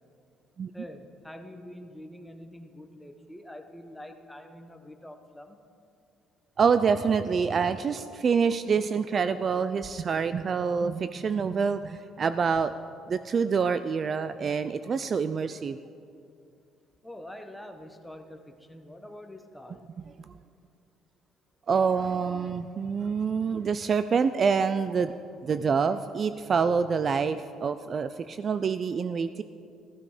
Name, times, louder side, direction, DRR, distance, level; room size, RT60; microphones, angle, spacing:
voice 1, 0.7-5.6 17.0-19.9, left 1 dB, 5° left, 5 dB, 1.1 m, -45 dB
voice 2, 6.6-12.7 13.1-15.8 21.7-25.1 25.4-29.4, right 6 dB, 40° right, 12 dB, 0.4 m, -26 dB
14.5 x 13.0 x 5.0 m, 2.5 s
cardioid pair, 115°, 0 cm